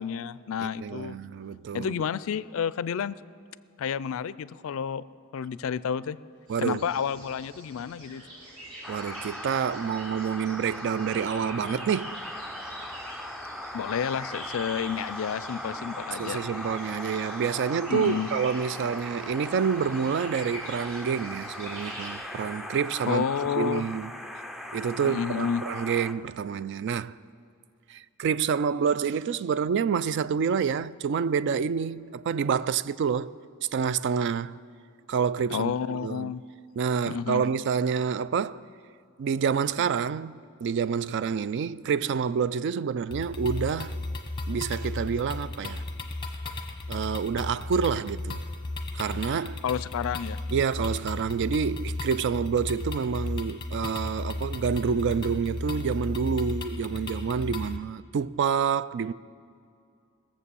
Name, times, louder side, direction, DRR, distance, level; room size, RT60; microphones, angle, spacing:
voice 1, 0.0-1.2 1.7-3.2 3.8-5.0 5.3-6.2 6.6-8.2 13.7-16.5 17.9-18.3 23.0-23.9 25.0-25.7 35.5-36.4 37.1-37.5 39.8-39.9 49.6-50.4, left 7 dB, 65° left, 0.4 m, -30 dB
voice 2, 0.6-2.0 6.5-6.8 8.9-12.2 16.2-23.2 23.6-24.1 24.7-27.1 27.9-33.3 33.7-34.6 35.1-36.3 36.8-38.6 39.2-44.0 44.5-45.8 46.9-48.4 48.9-49.6 50.5-59.1, right 6 dB, 55° right, 0.3 m, -28 dB
sound 1, 6.5-22.1, right 1 dB, 75° right, 4.0 m, -45 dB
sound 2, 8.8-26.1, left 1 dB, ahead, 0.5 m, -39 dB
sound 3, 43.1-57.8, left 2 dB, 25° left, 0.9 m, -34 dB
19.5 x 7.4 x 6.9 m
head